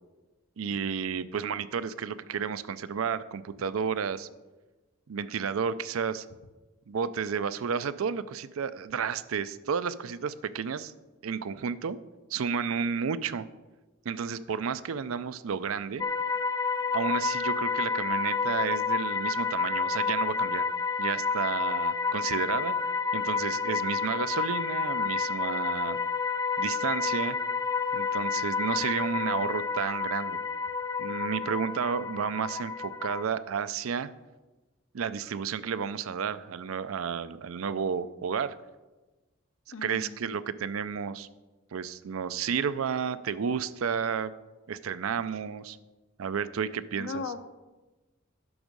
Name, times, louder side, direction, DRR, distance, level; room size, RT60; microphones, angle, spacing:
voice 1, 0.6-4.3 5.1-6.3 6.9-10.9 11.2-12.0 12.3-13.5 14.0-16.1 16.9-20.7 21.0-22.8 23.1-26.0 26.6-27.4 27.9-30.4 31.0-34.1 34.9-38.6 39.8-41.3 41.7-44.3 44.7-45.8 46.2-47.2, right 6 dB, 85° right, 14 dB, 0.5 m, -31 dB
sound 1, 16.0-33.2, left 5 dB, 20° left, 0.4 m, -30 dB
voice 2, 39.7-40.3 46.9-47.4, left 3 dB, 65° left, 9 dB, 0.7 m, -37 dB
11.0 x 6.2 x 5.2 m, 1.2 s
head